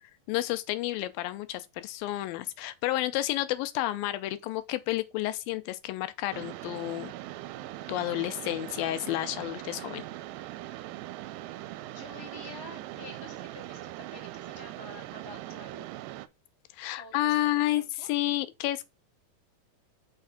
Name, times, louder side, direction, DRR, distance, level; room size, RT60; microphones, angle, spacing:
voice 1, 0.3-7.1 7.9-10.1 16.7-18.8, left 15 dB, 90° left, 2.4 m, -30 dB
Mechanisms, 6.3-16.3, right 15 dB, 85° right, 2.3 m, -41 dB
voice 2, 11.8-15.8 17.0-18.1, left 2 dB, 10° right, 1.2 m, -48 dB
5.8 x 3.4 x 5.7 m
omnidirectional pair, 4.1 m